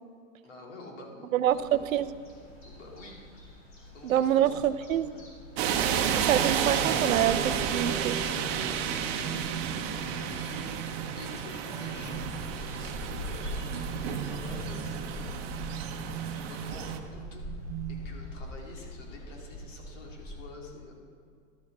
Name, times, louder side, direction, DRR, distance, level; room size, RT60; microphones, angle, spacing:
voice 1, 0.4-2.1 2.6-3.7 3.9-5.3 8.7-9.4 10.1-15.4 16.2-17.4 17.9-21.0, left 2 dB, 65° left, 0 dB, 2.4 m, -48 dB
voice 2, 1.3-2.1 4.0-5.2 6.1-8.2, right 11 dB, 80° right, 14 dB, 0.6 m, -26 dB
sound 1, 1.4-20.5, left 1 dB, 30° left, 2.6 m, -44 dB
sound 2, 5.6-17.0, right 7 dB, 50° right, 0.9 m, -31 dB
sound 3, 6.8-18.2, right 11 dB, 35° right, 0.5 m, -42 dB
12.0 x 6.5 x 4.7 m, 2.2 s
hypercardioid pair, 115°, 40 cm